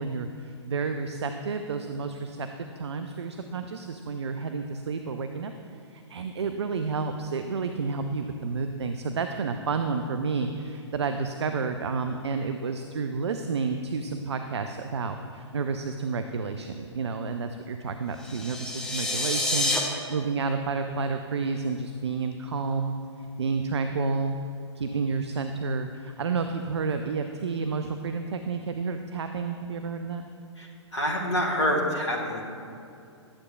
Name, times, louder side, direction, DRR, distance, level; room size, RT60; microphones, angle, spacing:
voice 1, 0.0-22.9 23.4-24.4 24.7-30.2, right 4 dB, 65° right, 7 dB, 0.4 m, -30 dB
sound 1, 18.2-19.8, left 2 dB, 5° left, 0.6 m, -28 dB
voice 2, 30.6-32.4, equal, 65° left, -1 dB, 1.3 m, -27 dB
11.5 x 7.8 x 2.3 m, 2.6 s
figure-of-eight pair, 120°, 15 cm